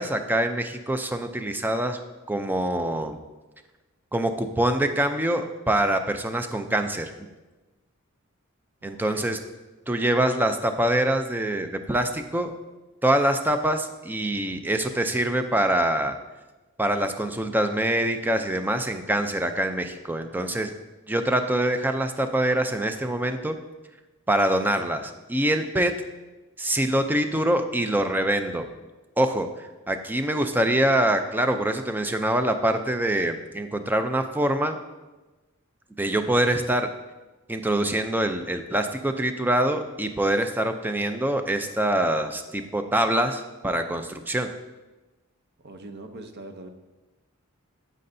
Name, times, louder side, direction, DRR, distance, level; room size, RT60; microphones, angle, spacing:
voice 1, 0.0-2.0 2.3-3.2 4.1-7.3 8.8-9.4 9.9-12.5 13.0-16.1 16.8-20.7 21.1-23.6 24.3-25.9 26.6-28.7 29.2-29.5 29.9-34.8 36.0-36.9 37.5-44.5, right 1 dB, 10° right, 7 dB, 0.4 m, -24 dB
voice 2, 8.8-9.3 45.6-46.7, right 2 dB, 50° right, 6 dB, 0.7 m, -42 dB
9.6 x 7.5 x 2.7 m, 1.1 s
head